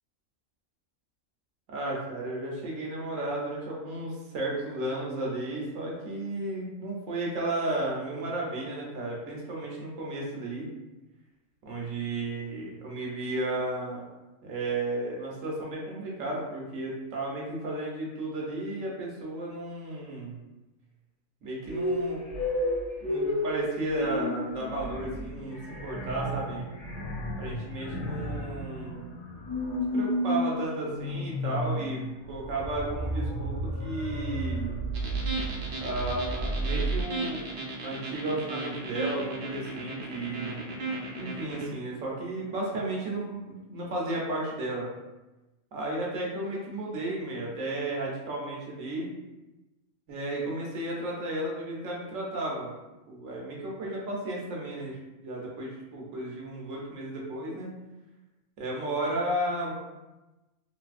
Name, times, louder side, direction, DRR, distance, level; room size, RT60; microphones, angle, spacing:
voice 1, 1.7-10.7 11.6-14.1 14.4-20.4 21.4-22.2 23.0-26.7 27.4-29.1 29.9-34.8 35.8-37.4 37.8-40.9 41.1-44.9 45.7-49.1 50.1-52.7 53.1-57.7 58.6-59.8, right 2 dB, 75° right, -3 dB, 1.2 m, -33 dB
sound 1, 21.7-37.0, equal, 50° left, 0.8 m, -32 dB
sound 2, 34.9-41.7, right 2 dB, 60° right, 0.8 m, -35 dB
3.3 x 2.7 x 2.4 m, 1.1 s
omnidirectional pair, 1.4 m